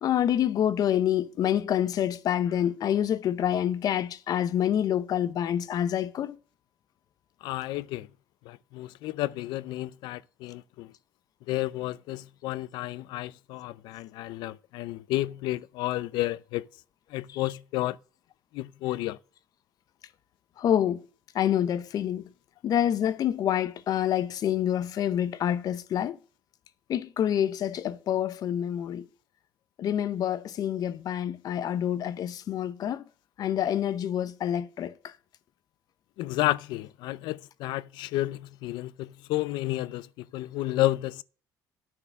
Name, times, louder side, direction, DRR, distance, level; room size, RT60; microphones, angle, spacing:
voice 1, 0.0-6.4 20.6-21.0 21.3-22.3 22.6-26.2 26.9-29.0 29.8-33.0 33.4-35.1, left 10 dB, 55° left, 0.8 m, -27 dB
voice 2, 7.4-8.1 8.4-10.9 11.5-16.7 17.1-18.0 18.5-19.2 36.2-41.2, left 16 dB, 85° left, 0.5 m, -31 dB
10.0 x 4.6 x 7.3 m
cardioid pair, 110°, 8 cm